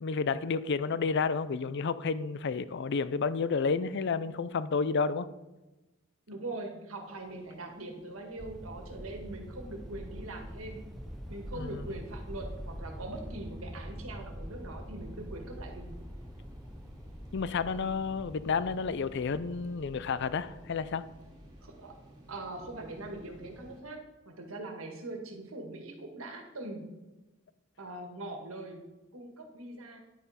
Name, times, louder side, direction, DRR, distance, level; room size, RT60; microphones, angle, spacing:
voice 1, 0.0-5.3 11.5-11.8 17.3-21.0, left 5 dB, 60° left, 16 dB, 0.5 m, -31 dB
voice 2, 6.3-10.8 11.3-16.0 21.6-22.0 22.3-24.0 24.3-26.9 27.8-28.8 29.1-30.0, right 2 dB, 90° right, 3 dB, 1.9 m, -42 dB
sound 1, 7.0-23.8, equal, 20° right, 2.4 m, -55 dB
sound 2, 8.4-20.8, equal, ahead, 0.6 m, -45 dB
10.5 x 9.1 x 4.3 m, 1.1 s
head